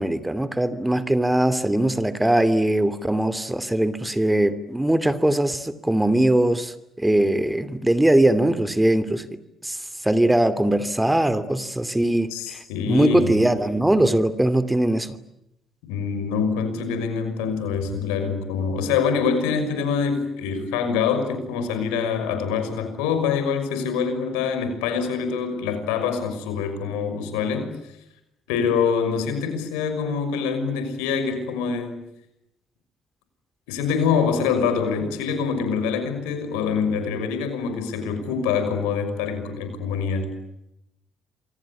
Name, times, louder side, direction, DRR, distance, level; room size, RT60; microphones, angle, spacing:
voice 1, 0.0-9.3 9.6-9.8 10.0-15.2, right 1 dB, 10° right, 12 dB, 2.8 m, -21 dB
voice 2, 12.3-13.4 15.9-27.8 28.5-32.1 33.7-40.3, left 6 dB, 85° left, 9 dB, 5.9 m, -25 dB
28.5 x 24.5 x 8.5 m, 0.85 s
hypercardioid pair, 55°, 0 cm